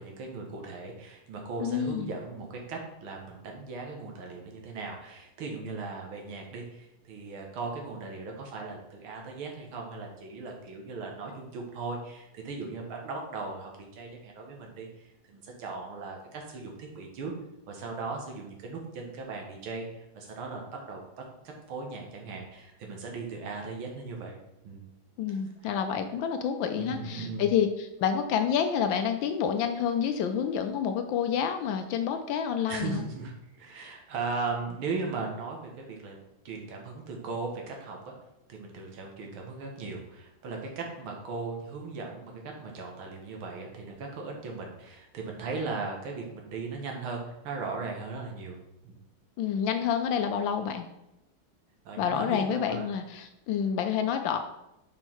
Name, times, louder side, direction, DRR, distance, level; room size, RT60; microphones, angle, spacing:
voice 1, 0.0-17.3 17.7-24.9 25.3-25.7 26.8-27.5 32.7-38.1 38.5-48.6 48.8-49.0 51.8-52.9, right 4 dB, 80° right, 1 dB, 2.0 m, -38 dB
voice 2, 1.6-2.1 25.2-33.0 49.4-50.9 52.0-54.4, left 8 dB, 75° left, 7 dB, 1.2 m, -28 dB
5.7 x 4.4 x 4.4 m, 0.90 s
omnidirectional pair, 2.3 m